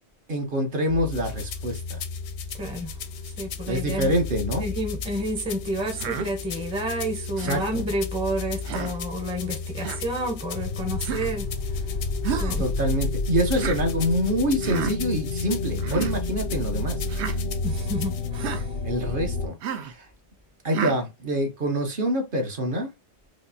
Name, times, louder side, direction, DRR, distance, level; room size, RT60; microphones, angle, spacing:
voice 1, 0.3-2.0 3.7-4.7 7.4-7.8 12.6-17.0 18.8-19.6 19.8-20.1 20.6-22.9, equal, 50° right, 1.0 m, -26 dB
sound 1, 0.9-19.5, left 3 dB, 55° left, 0.6 m, -31 dB
sound 2, 1.1-18.3, left 8 dB, 80° left, 0.9 m, -41 dB
voice 2, 2.5-2.9 3.2-4.1 4.6-12.7 17.6-18.7, right 1 dB, 5° right, 0.6 m, -30 dB
Human voice, 6.0-6.3 7.4-7.7 8.6-9.0 9.8-10.0 11.0-11.3 12.2-12.6 13.5-13.8 14.6-14.9 15.8-16.1 17.1-17.4 18.3-18.6 19.6-19.9 20.7-21.0, right 8 dB, 75° right, 0.9 m, -31 dB
4.8 x 2.0 x 2.6 m
omnidirectional pair, 1.2 m